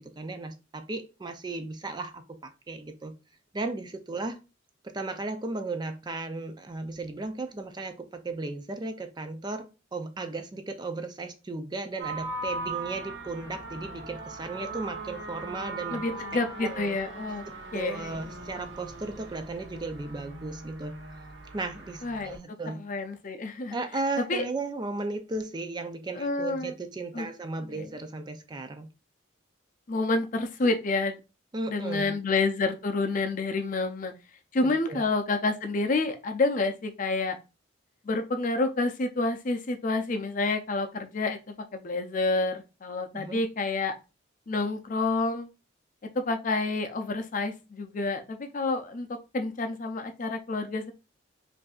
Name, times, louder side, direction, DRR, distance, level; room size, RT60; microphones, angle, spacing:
voice 1, 0.0-3.2 3.5-4.4 4.8-17.0 17.7-21.0 21.5-22.8 23.7-28.9 31.5-32.2 34.6-35.0 43.1-43.5, right 3 dB, 20° right, 0.4 m, -35 dB
sound 1, 12.0-22.4, right 2 dB, 70° right, 0.9 m, -39 dB
voice 2, 15.9-17.4 17.7-18.2 22.0-22.4 22.8-23.8 24.2-24.4 26.1-26.7 27.1-27.3 27.6-27.9 29.9-31.1 31.7-34.1 34.5-37.4 38.0-41.4 41.7-43.9 44.5-45.5 46.1-49.1 49.3-50.9, left 3 dB, 45° left, 0.5 m, -28 dB
5.1 x 2.6 x 2.4 m
head